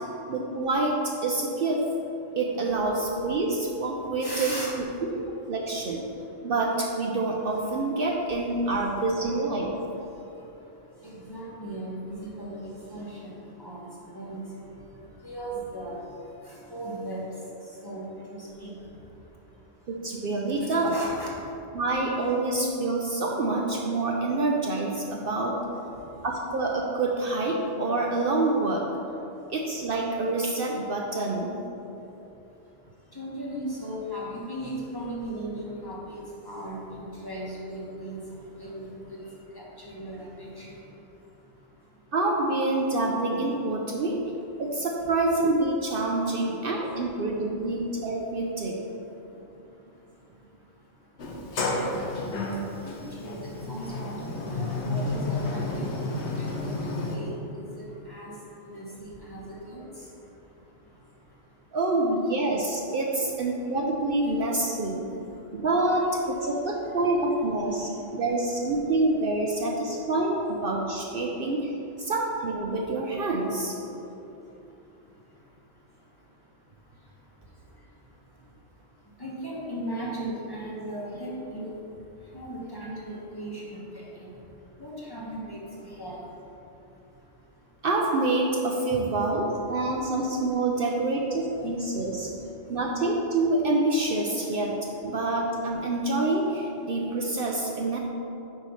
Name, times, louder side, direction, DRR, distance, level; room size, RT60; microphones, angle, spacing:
voice 1, 0.3-1.8 2.4-4.9 5.1-6.0 6.4-9.7 19.9-20.9 21.7-25.6 26.2-28.8 29.5-31.6 42.1-44.2 44.6-48.8 61.7-65.1 65.5-71.7 72.0-73.7 87.8-92.3 92.7-94.7 95.0-98.0, right 2 dB, 60° right, -1 dB, 0.7 m, -27 dB
voice 2, 4.2-4.7 11.0-12.6 12.9-13.3 13.6-13.9 14.1-14.4 15.2-16.0 16.7-17.2 17.8-18.7 20.9-21.3 33.1-38.2 38.6-39.2 39.5-40.7 52.8-53.4 53.7-55.6 56.0-56.7 57.1-58.3 58.6-59.8 79.2-81.7 82.3-83.8 84.2-84.3 84.8-86.2, right 1 dB, 20° left, -5 dB, 1.2 m, -37 dB
Sliding door, 51.2-57.2, left 2 dB, 70° left, 1.1 m, -31 dB
9.2 x 3.1 x 5.5 m, 3.0 s
omnidirectional pair, 1.2 m